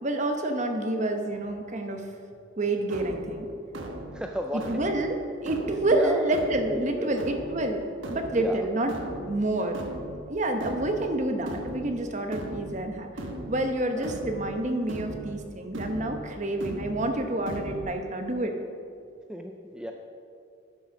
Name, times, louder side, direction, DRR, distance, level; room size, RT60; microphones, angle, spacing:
voice 1, 0.0-2.0 2.6-3.5 4.5-9.8 10.3-13.1 13.5-18.5, right 1 dB, 40° right, 5 dB, 0.9 m, -28 dB
sound 1, 2.9-17.8, right 1 dB, 85° right, 1.1 m, -39 dB
voice 2, 4.1-4.6 5.9-6.2 6.7-7.1 8.4-8.6 14.0-14.1 19.3-19.9, equal, 5° right, 2 dB, 0.4 m, -33 dB
10.5 x 6.1 x 6.0 m, 2.4 s
head